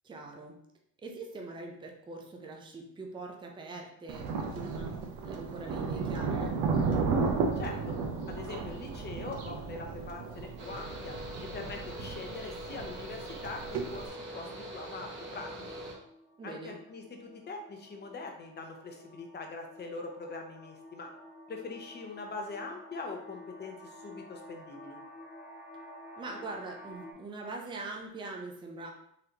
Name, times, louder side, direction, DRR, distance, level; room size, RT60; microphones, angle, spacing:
voice 1, 0.0-0.6 1.0-6.9 16.4-16.8 26.2-28.9, right 3 dB, 15° right, 1 dB, 0.5 m, -43 dB
Thunder, 4.1-14.1, right 4 dB, 80° right, 0.7 m, -34 dB
voice 2, 7.6-8.0 8.3-11.1 11.4-13.6 13.9-15.8 16.4-21.1 21.5-25.0, left 3 dB, 30° left, 2 dB, 0.7 m, -42 dB
sound 1, 10.3-10.5 10.8-27.1, left 1 dB, 50° left, 1.1 m, -52 dB
Mechanical fan, 10.6-15.9, right 1 dB, 35° right, 1.2 m, -43 dB
3.9 x 3.1 x 2.8 m, 0.73 s
cardioid pair, 125°, 34 cm